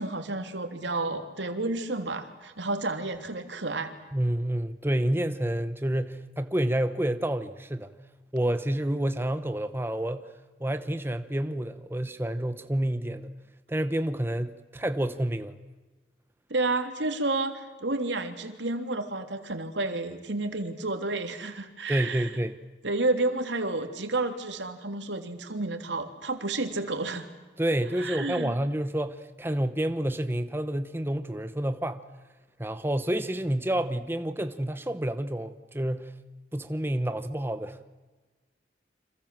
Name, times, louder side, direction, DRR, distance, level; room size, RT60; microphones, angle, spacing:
voice 1, 0.0-3.9 16.5-22.3 22.8-27.3 28.0-28.5, right 2 dB, 85° right, 7 dB, 3.2 m, -30 dB
voice 2, 4.1-7.9 8.3-10.3 10.6-13.3 13.7-15.6 21.9-22.6 27.6-32.0 32.6-36.1 36.5-37.9, right 1 dB, 15° right, 10 dB, 1.0 m, -29 dB
29.5 x 26.5 x 7.6 m, 1.3 s
head